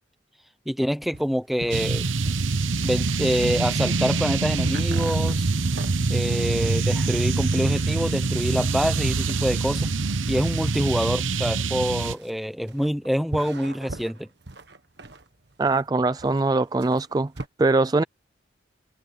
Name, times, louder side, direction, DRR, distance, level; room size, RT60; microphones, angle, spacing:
voice 1, 0.7-2.1 2.8-5.5 6.1-9.9 10.3-14.3, equal, ahead, 0.8 m, -26 dB
sound 1, 1.1-17.5, right 2 dB, 60° right, 1.6 m, -40 dB
sound 2, 1.7-12.1, right 3 dB, 90° right, 0.9 m, -25 dB
voice 2, 15.6-17.3 17.6-18.0, right 3 dB, 20° right, 0.3 m, -22 dB
head